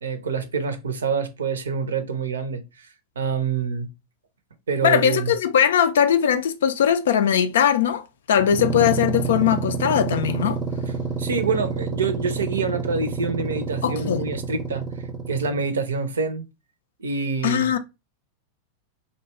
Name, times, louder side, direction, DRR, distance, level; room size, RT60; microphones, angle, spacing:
voice 1, 0.0-2.9 3.2-3.9 4.7-5.3 11.2-14.8 15.3-16.4 17.0-17.7, right 5 dB, 70° right, 0.5 m, -26 dB
voice 2, 4.8-8.0 8.3-10.6 13.8-14.2 17.4-17.8, left 9 dB, 60° left, 0.4 m, -20 dB
sound 1, 8.4-15.7, right 5 dB, 15° right, 0.6 m, -28 dB
2.7 x 2.2 x 4.1 m
figure-of-eight pair, 90°, 0 cm